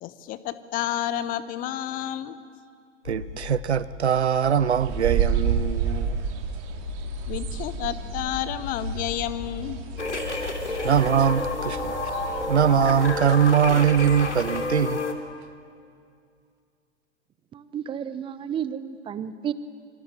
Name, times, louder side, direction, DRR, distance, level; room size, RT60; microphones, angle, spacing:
voice 1, 0.0-2.4 7.3-9.8, left 12 dB, 25° left, 1.0 m, -30 dB
sound 1, 3.0-14.5, left 6 dB, 55° left, 3.6 m, -39 dB
voice 2, 3.0-6.2 10.8-12.1 12.5-15.0, right 8 dB, 70° right, 1.0 m, -22 dB
sound 2, 4.8-14.7, right 8 dB, 35° right, 2.9 m, -31 dB
sound 3, 10.0-15.1, left 2 dB, 80° left, 3.1 m, -30 dB
voice 3, 17.5-19.5, right 8 dB, 15° right, 0.9 m, -32 dB
27.0 x 24.5 x 9.0 m
figure-of-eight pair, 110°, 35 cm